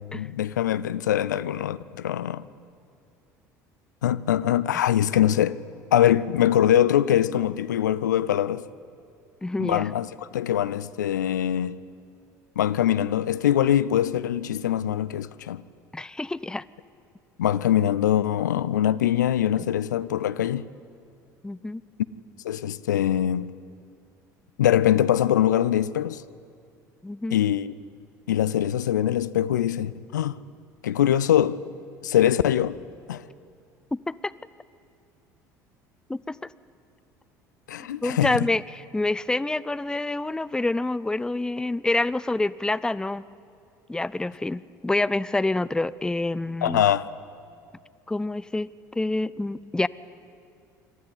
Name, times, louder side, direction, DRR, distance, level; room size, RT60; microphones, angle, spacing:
voice 1, 0.1-2.4 4.0-5.6 5.9-8.6 9.6-11.8 12.6-15.6 17.4-20.7 22.4-23.5 24.6-26.2 27.3-27.7 28.3-30.4 30.8-31.6 32.0-32.8 33.1-33.3 37.7-38.4 46.6-47.1, left 11 dB, 80° left, 0.5 m, -23 dB
voice 2, 9.4-9.9 15.9-16.6 21.4-21.8 27.0-27.4 33.9-34.3 36.1-36.5 38.0-43.2 43.9-46.8 48.1-48.7 49.0-49.9, left 2 dB, 10° left, 0.5 m, -27 dB
27.0 x 12.5 x 9.7 m
figure-of-eight pair, 60°, 10 cm